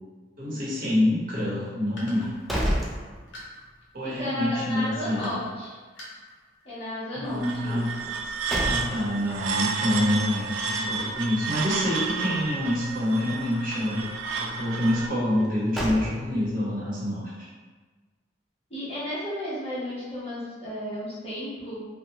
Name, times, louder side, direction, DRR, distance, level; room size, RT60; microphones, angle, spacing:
voice 1, 0.4-2.3 3.9-5.4 7.1-7.9 8.6-14.1 14.4-17.5, left 1 dB, 50° right, -7 dB, 0.9 m, -27 dB
sound 1, 1.9-4.0 4.8-5.7 5.9-6.6, left 1 dB, 70° left, 0.8 m, -44 dB
sound 2, 2.1-3.7 4.1-4.2 8.0-9.3 15.3-16.6, equal, ahead, 0.4 m, -31 dB
voice 2, 4.2-5.8 6.6-7.9 10.6-11.0 18.7-21.8, left 1 dB, 35° left, -9 dB, 1.0 m, -33 dB
sound 3, 7.3-15.1, right 5 dB, 85° right, 0.3 m, -31 dB
2.8 x 2.2 x 2.8 m, 1.4 s
head